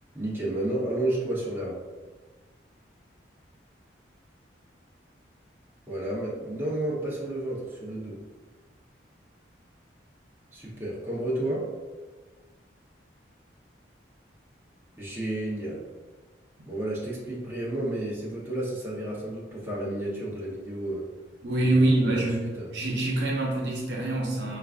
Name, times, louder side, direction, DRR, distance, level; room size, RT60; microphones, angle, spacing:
voice 1, 0.1-1.8 5.9-8.2 10.5-11.7 15.0-15.8 16.6-21.0 21.6-22.7, right 1 dB, 10° right, -7 dB, 0.7 m, -31 dB
voice 2, 21.4-22.4 22.7-24.6, right 2 dB, 65° right, -2 dB, 0.7 m, -25 dB
4.6 x 2.4 x 2.4 m, 1.3 s
head